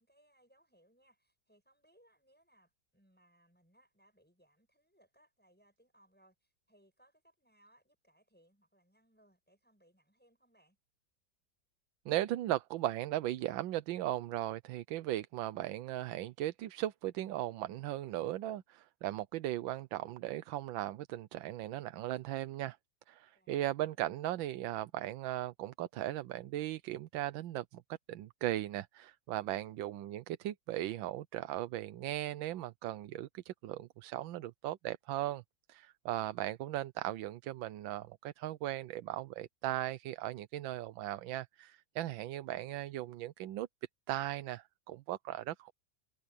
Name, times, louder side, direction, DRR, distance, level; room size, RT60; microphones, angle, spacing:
voice 1, 0.0-10.8 23.3-24.1, right 1 dB, 5° left, 7.7 m, -69 dB
voice 2, 12.1-22.8 23.1-27.8 28.1-35.4 35.7-43.7 44.1-45.7, right 14 dB, 85° right, 1.4 m, -37 dB
omnidirectional pair, 2.1 m